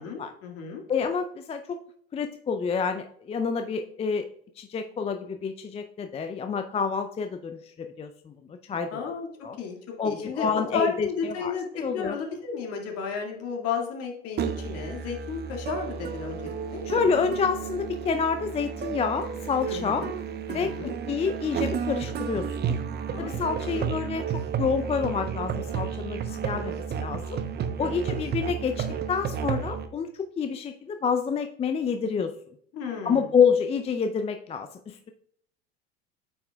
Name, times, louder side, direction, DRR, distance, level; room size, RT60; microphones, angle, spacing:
voice 1, 0.0-0.8 8.9-9.3 9.6-9.8 10.0-16.8 19.7-20.1 20.5-21.0 23.1-23.4 23.6-23.9 27.8-28.2 32.7-33.3, left 5 dB, 50° left, 2 dB, 2.0 m, -33 dB
voice 2, 0.9-1.8 2.1-4.3 4.6-8.3 8.7-9.0 9.4-9.6 10.0-12.2 16.9-20.1 20.5-20.7 21.1-22.8 23.2-24.2 24.6-27.4 27.8-32.3 33.0-35.1, left 6 dB, 20° left, 7 dB, 0.5 m, -28 dB
Musical instrument, 14.4-29.9, right 7 dB, 35° right, 0.8 m, -32 dB
8.9 x 5.8 x 2.3 m, 0.65 s
hypercardioid pair, 80°, 31 cm